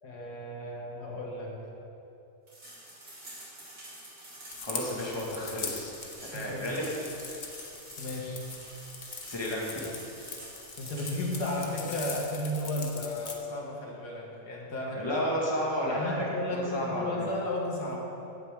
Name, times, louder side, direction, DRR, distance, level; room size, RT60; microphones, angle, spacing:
voice 1, 0.0-1.6 6.3-6.6 8.0-8.4 10.8-15.2 15.8-18.0, left 1 dB, 90° left, -2 dB, 2.3 m, -34 dB
sound 1, 2.5-12.3, right 1 dB, 65° right, 3.7 m, -48 dB
sound 2, 4.5-13.3, left 5 dB, 55° left, 1.3 m, -42 dB
voice 2, 4.6-5.9 6.3-6.9 9.3-9.8 14.9-17.3, equal, 15° left, -5 dB, 2.1 m, -32 dB
16.0 x 9.0 x 3.8 m, 2.8 s
omnidirectional pair, 1.7 m